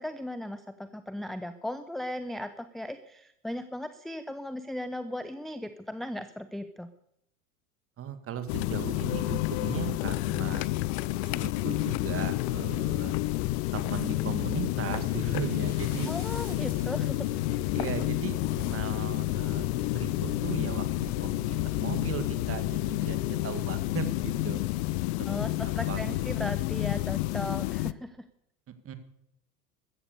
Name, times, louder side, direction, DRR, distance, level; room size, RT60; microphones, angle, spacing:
voice 1, 0.0-6.9 16.1-17.3 25.3-28.2, left 1 dB, ahead, 10 dB, 0.7 m, -37 dB
voice 2, 8.0-10.7 11.2-13.2 13.7-16.1 17.7-24.6 25.2-26.2 28.8-28.9, right 8 dB, 30° right, 10 dB, 2.1 m, -37 dB
sound 1, 8.5-27.9, left 19 dB, 45° left, 0.6 m, -30 dB
Bass drum, 8.7-8.9 9.4-9.9 10.7-10.9 11.4-11.9 12.7-12.9 13.4-13.9 14.3-24.5, right 4 dB, 80° right, 1.7 m, -46 dB
15.0 x 14.0 x 6.9 m, 0.75 s
figure-of-eight pair, 85°, 44 cm